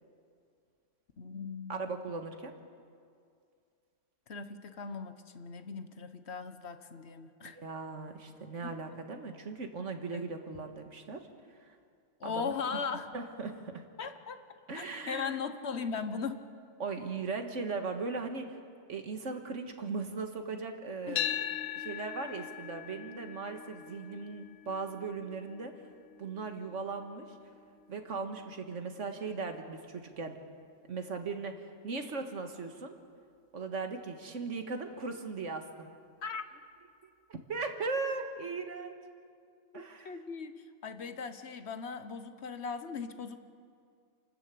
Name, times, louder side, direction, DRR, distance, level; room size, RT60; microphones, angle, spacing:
voice 1, 1.2-1.9 4.3-7.6 8.6-8.8 10.1-10.2 12.2-13.1 14.0-16.4 21.1-21.2 36.2-36.4 39.7-43.4, left 5 dB, 65° left, 10 dB, 1.3 m, -39 dB
voice 2, 1.7-2.5 7.4-11.3 11.6-11.8 12.2-12.8 13.1-13.8 14.7-15.4 16.8-18.6 18.9-21.3 21.8-25.7 26.2-27.4 27.9-30.4 30.9-32.9 33.5-35.9 37.3-38.9 39.7-40.1, right 4 dB, 85° right, 6 dB, 1.9 m, -38 dB
sound 1, 21.2-29.3, left 10 dB, 85° left, 1.2 m, -41 dB
28.0 x 13.0 x 8.4 m, 2.3 s
omnidirectional pair, 1.2 m